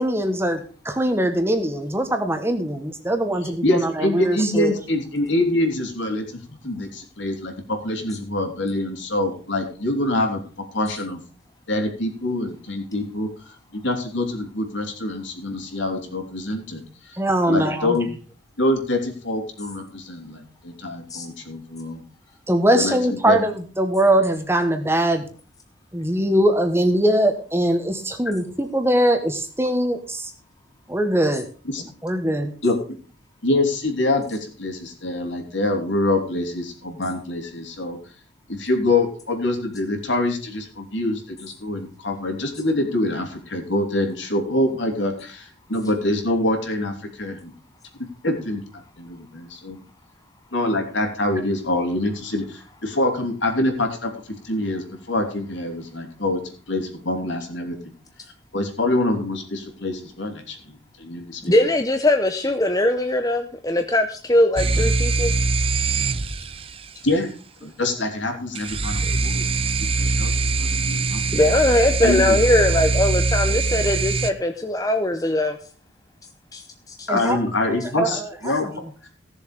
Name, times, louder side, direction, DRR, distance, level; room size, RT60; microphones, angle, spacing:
voice 1, 0.0-4.7 17.1-18.0 22.5-25.2 25.9-30.3 30.9-31.5 32.0-32.5 77.1-78.3, right 1 dB, 10° right, 6 dB, 1.3 m, -22 dB
voice 2, 3.6-10.4 10.7-11.2 11.7-13.3 13.7-17.1 17.5-18.1 18.6-22.0 22.7-23.4 31.7-31.8 32.6-32.8 33.4-38.0 38.5-47.5 48.2-48.6 49.0-49.8 50.5-54.1 54.4-56.4 56.7-57.8 58.5-61.5 67.0-67.3 67.6-69.6 70.0-71.4 72.0-72.4 77.1-78.7, left 1 dB, 70° left, 3 dB, 3.2 m, -25 dB
voice 3, 61.5-65.3 71.3-75.6 76.5-77.1, left 1 dB, 20° left, 6 dB, 0.7 m, -20 dB
sound 1, 64.6-66.9 68.5-74.3, right 3 dB, 30° right, 0.6 m, -22 dB
16.5 x 7.1 x 5.1 m, 0.39 s
head